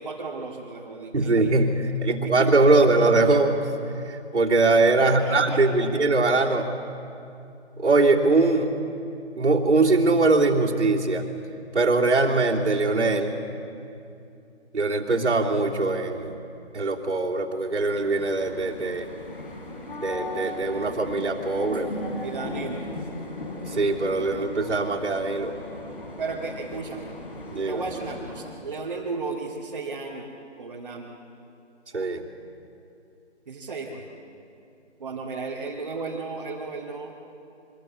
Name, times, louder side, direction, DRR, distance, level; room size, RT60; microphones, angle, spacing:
voice 1, 0.0-1.6 2.2-2.5 5.0-5.9 22.2-22.8 26.2-27.1 27.7-30.3 30.6-31.1 33.5-34.1 35.0-37.1, right 4 dB, 40° right, -3 dB, 2.1 m, -34 dB
voice 2, 1.1-3.6 4.1-6.7 7.8-8.7 9.4-11.2 11.7-13.4 14.7-16.3 16.7-19.1 20.0-21.9 23.7-25.5 27.5-27.8 31.9-32.2, right 3 dB, 85° right, -5 dB, 3.2 m, -22 dB
sound 1, 17.8-28.6, left 1 dB, 50° left, 5.0 m, -37 dB
25.0 x 22.0 x 8.5 m, 2.7 s
figure-of-eight pair, 170°, 35 cm